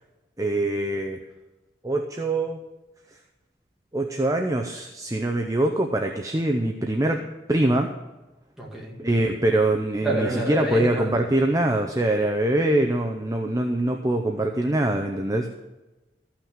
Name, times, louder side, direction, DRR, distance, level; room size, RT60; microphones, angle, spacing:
voice 1, 0.4-1.2 1.8-2.6 3.9-7.2 7.5-7.9 9.0-15.5, right 1 dB, 20° right, 3 dB, 0.6 m, -23 dB
voice 2, 8.6-9.0 10.0-11.2, right 1 dB, 5° right, -4 dB, 2.3 m, -28 dB
13.5 x 5.9 x 7.3 m, 1.1 s
head